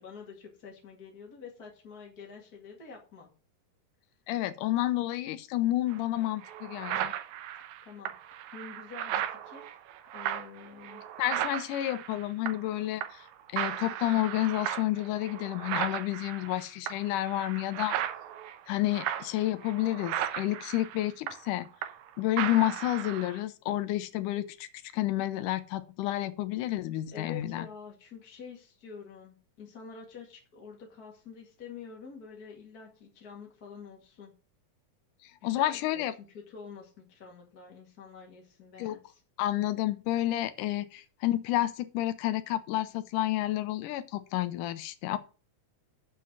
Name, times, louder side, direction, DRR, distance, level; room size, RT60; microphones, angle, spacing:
voice 1, 0.0-3.3 7.8-8.1 8.5-9.8 10.1-11.0 27.1-34.3 35.4-39.2, left 5 dB, 35° left, 2.1 m, -47 dB
voice 2, 4.3-7.1 11.2-13.2 13.5-18.0 18.7-21.7 22.2-24.7 24.9-27.7 35.4-36.1 38.8-39.0 39.4-45.2, left 15 dB, 85° left, 2.3 m, -30 dB
sound 1, 5.9-6.0 6.4-12.7 13.0-13.3 13.6-22.1 22.4-23.4, right 11 dB, 70° right, 2.1 m, -36 dB
7.5 x 5.8 x 7.5 m
omnidirectional pair, 3.7 m